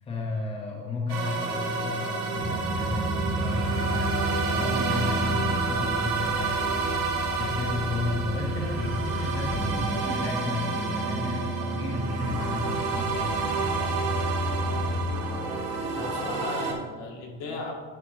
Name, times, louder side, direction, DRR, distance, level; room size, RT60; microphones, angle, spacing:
voice 1, 0.0-12.9, left 3 dB, 20° left, -2 dB, 0.9 m, -33 dB
sound 1, 1.1-16.7, right 4 dB, 55° right, 1.2 m, -30 dB
sound 2, 2.3-15.1, equal, 15° right, 1.0 m, -31 dB
voice 2, 15.9-17.7, left 3 dB, 75° left, -2 dB, 1.8 m, -36 dB
10.0 x 4.9 x 3.1 m, 1.5 s
cardioid pair, 175°, 32 cm